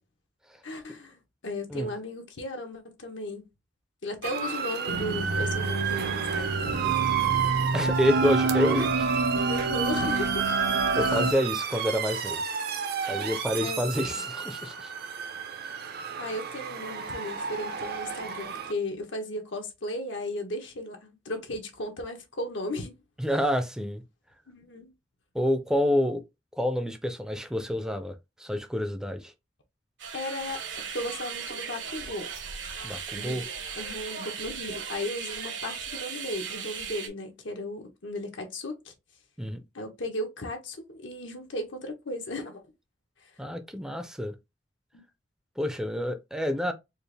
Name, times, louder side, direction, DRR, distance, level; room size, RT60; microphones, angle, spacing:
voice 1, 0.6-3.4 4.0-7.1 9.5-10.5 11.0-11.2 13.5-14.2 16.2-22.9 24.5-24.9 30.1-32.3 33.2-33.4 33.7-38.9 39.7-42.6 43.2-43.3 44.9-45.0, left 1 dB, 75° left, 1.2 m, -36 dB
Motor vehicle (road) / Siren, 4.2-18.7, right 6 dB, 55° right, 0.7 m, -33 dB
sound 1, 4.9-11.3, right 4 dB, 90° right, 0.7 m, -27 dB
voice 2, 7.7-9.1 9.4-9.5 10.9-12.4 13.1-14.9 23.2-24.0 25.3-26.2 26.6-28.1 28.4-29.3 32.8-33.4 39.4-39.6 43.4-44.3 45.6-46.7, equal, 5° right, 0.6 m, -28 dB
sound 2, 30.0-37.1, right 6 dB, 70° right, 1.2 m, -37 dB
4.5 x 2.5 x 3.3 m
head